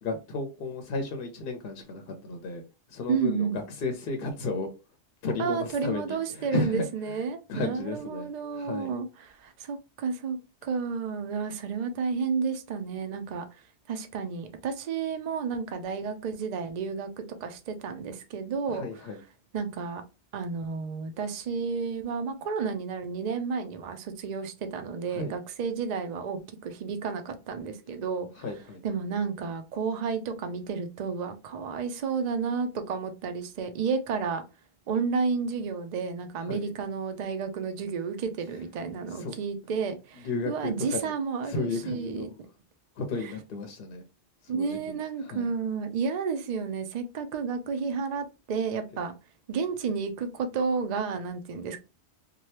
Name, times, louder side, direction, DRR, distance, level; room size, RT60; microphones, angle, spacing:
voice 1, 0.0-2.6 2.9-4.7 5.2-7.2 7.5-9.0 18.7-19.2 25.1-25.4 28.4-28.8 36.4-36.7 39.1-39.4 40.2-41.1 41.4-42.3 43.0-44.0 44.4-45.5, left 3 dB, 60° left, 0.7 m, -34 dB
voice 2, 3.1-3.6 5.4-10.4 10.6-13.4 13.9-18.8 19.5-20.0 20.3-28.3 28.8-34.4 34.9-42.3 43.2-43.3 44.5-49.1 49.5-51.8, right 5 dB, 55° right, 0.5 m, -31 dB
2.8 x 2.2 x 3.1 m
omnidirectional pair, 1.2 m